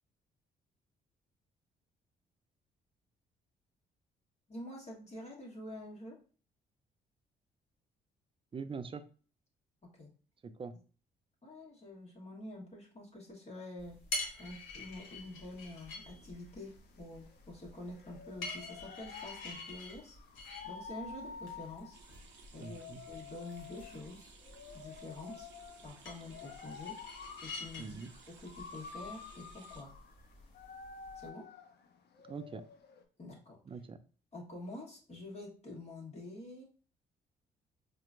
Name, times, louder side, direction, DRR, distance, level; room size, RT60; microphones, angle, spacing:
voice 1, 4.5-6.2 9.9-10.1 11.4-14.0 14.4-20.2 20.6-22.0 22.5-24.3 24.7-25.5 25.8-27.0 27.4-29.9 31.1-31.5 33.2-33.6 34.3-36.6, left 1 dB, 35° left, -3 dB, 1.2 m, -47 dB
voice 2, 8.5-9.0 10.4-10.8 22.6-23.0 27.8-28.1 32.3-32.6 33.7-34.0, right 5 dB, 25° right, 11 dB, 0.4 m, -43 dB
sound 1, 13.8-31.3, left 2 dB, 80° left, 1.0 m, -48 dB
sound 2, 15.0-33.0, left 6 dB, 55° left, 0.6 m, -51 dB
sound 3, 21.9-29.8, right 6 dB, 70° right, 0.6 m, -59 dB
4.2 x 2.2 x 2.5 m, 0.38 s
hypercardioid pair, 50°, 20 cm